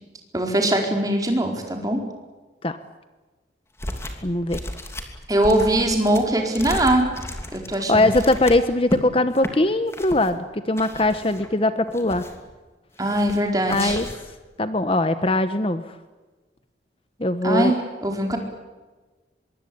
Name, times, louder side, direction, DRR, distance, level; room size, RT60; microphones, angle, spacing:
voice 1, 0.3-2.0 5.3-7.1 7.5-8.1 13.0-14.0 17.4-18.4, right 1 dB, 20° right, 2 dB, 4.5 m, -21 dB
sound 1, 3.8-4.2 4.5-9.0 9.4-9.5 9.9-10.3 10.8-11.5 11.9-12.5 13.0-13.4 13.7-14.3, left 1 dB, 15° left, 2.9 m, -33 dB
voice 2, 4.2-4.6 7.9-12.3 13.7-14.1 14.6-15.8 17.2-17.7, left 2 dB, 30° left, 10 dB, 1.0 m, -21 dB
25.0 x 22.5 x 8.7 m, 1.2 s
head